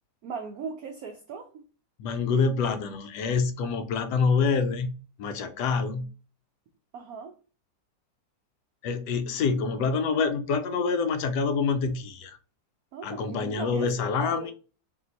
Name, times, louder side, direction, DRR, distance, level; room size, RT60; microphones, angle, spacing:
voice 1, 0.2-1.6 6.9-7.4 12.9-13.9 14.2-14.5, right 5 dB, 70° right, 0.9 m, -38 dB
voice 2, 2.0-6.1 8.8-12.4 13.0-14.5, left 5 dB, 75° left, 1.1 m, -26 dB
3.7 x 2.8 x 3.9 m
omnidirectional pair, 2.0 m